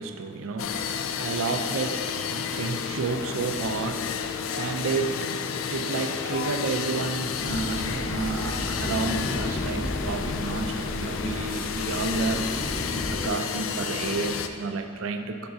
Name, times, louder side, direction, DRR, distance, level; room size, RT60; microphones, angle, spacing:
voice 1, 0.0-12.5 13.0-15.5, right 4 dB, 85° right, 7 dB, 0.4 m, -31 dB
sound 1, 0.6-14.5, left 7 dB, 85° left, 0.4 m, -31 dB
sound 2, 7.4-13.3, equal, 20° left, 0.5 m, -33 dB
8.8 x 5.8 x 2.6 m, 2.2 s
head